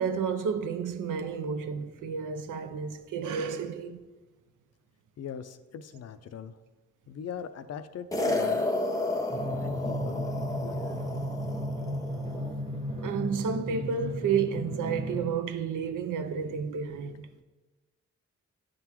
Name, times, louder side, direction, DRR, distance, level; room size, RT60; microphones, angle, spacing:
voice 1, 0.0-4.0 13.0-17.3, right 6 dB, 80° right, 0.5 m, -31 dB
voice 2, 5.2-6.5 7.1-8.6 9.6-11.0 17.1-17.2, left 7 dB, 55° left, 0.5 m, -41 dB
sound 1, 8.1-12.6, left 2 dB, 10° left, 0.8 m, -32 dB
Drum, 9.3-15.3, equal, 20° right, 1.1 m, -34 dB
9.0 x 3.8 x 3.0 m
cardioid pair, 60°, 31 cm